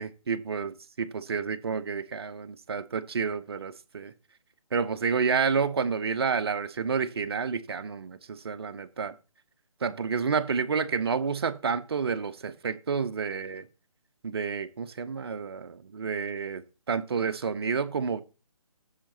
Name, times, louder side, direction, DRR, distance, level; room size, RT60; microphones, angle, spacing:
voice 1, 0.0-4.1 4.7-9.1 9.8-13.7 14.2-18.2, right 5 dB, 45° right, 0.9 m, -30 dB
15.0 x 6.0 x 4.0 m
figure-of-eight pair, 145°, 18 cm